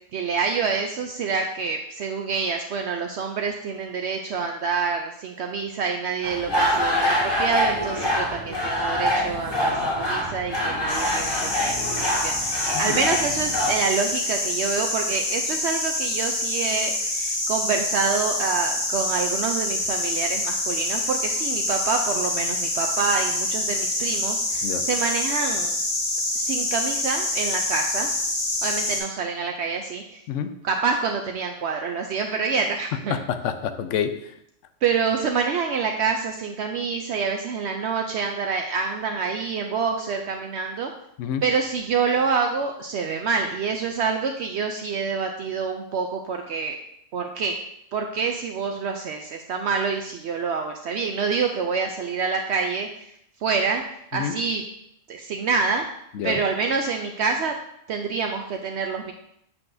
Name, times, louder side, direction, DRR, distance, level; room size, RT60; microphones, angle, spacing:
voice 1, 0.1-25.8 26.3-28.1 28.6-30.2 30.6-33.1 34.8-40.9 41.4-46.8 47.1-47.6 47.9-53.1 53.4-53.8 54.1-54.6 55.1-55.9 56.2-57.5 57.9-59.1, right 5 dB, 65° right, 3 dB, 0.8 m, -27 dB
sound 1, 6.2-13.7, left 1 dB, 20° left, 2.0 m, -25 dB
sound 2, 10.9-29.0, left 2 dB, 45° left, 1.6 m, -26 dB
voice 2, 12.7-13.1 24.6-24.9 30.3-30.6 33.3-34.3 41.2-41.4 54.1-54.3 56.1-56.4, left 8 dB, 75° left, 10 dB, 0.9 m, -28 dB
7.6 x 6.0 x 2.6 m, 0.75 s
omnidirectional pair, 1.3 m